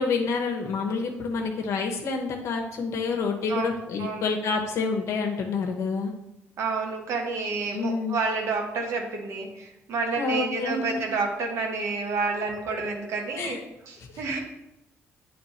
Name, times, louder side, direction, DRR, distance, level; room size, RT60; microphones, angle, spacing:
voice 1, 0.0-6.1 7.7-8.2 10.2-11.0 13.4-13.6 14.1-14.2, left 4 dB, 75° left, 2 dB, 0.8 m, -28 dB
voice 2, 6.6-13.6 13.9-14.4, right 4 dB, 75° right, 2 dB, 1.4 m, -29 dB
8.6 x 3.2 x 4.2 m, 0.91 s
cardioid pair, 115°, 5 cm